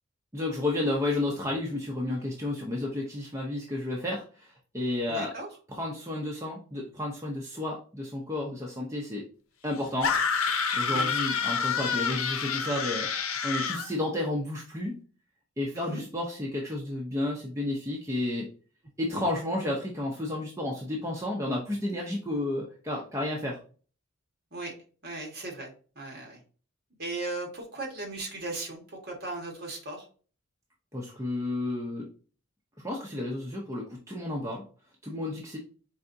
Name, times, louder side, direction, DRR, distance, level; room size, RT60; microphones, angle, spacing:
voice 1, 0.3-5.3 5.7-9.2 9.6-10.1 10.7-13.1 13.4-14.9 15.6-18.5 19.0-23.6 30.9-32.1 32.8-34.6 35.0-35.6, left 1 dB, 15° right, -2 dB, 0.6 m, -31 dB
voice 2, 5.1-5.5 10.9-11.1 15.7-16.0 19.1-19.3 24.5-24.7 25.0-26.4 27.0-30.1, right 2 dB, 45° right, 0 dB, 1.5 m, -37 dB
sound 1, 10.0-13.9, left 5 dB, 75° left, 0.7 m, -28 dB
4.8 x 3.4 x 2.6 m, 0.39 s
head